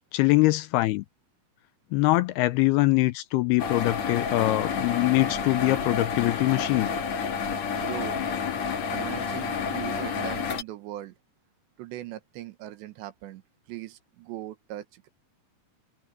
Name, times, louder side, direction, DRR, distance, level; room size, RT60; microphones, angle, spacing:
voice 1, 0.1-1.0 1.9-6.9, left 19 dB, 80° left, 2.5 m, -23 dB
sound 1, 3.6-10.6, left 6 dB, 50° left, 2.4 m, -30 dB
voice 2, 7.7-8.2 8.9-11.2 11.8-13.4 13.7-15.1, right 14 dB, 90° right, 3.5 m, -39 dB
omnidirectional pair, 4.9 m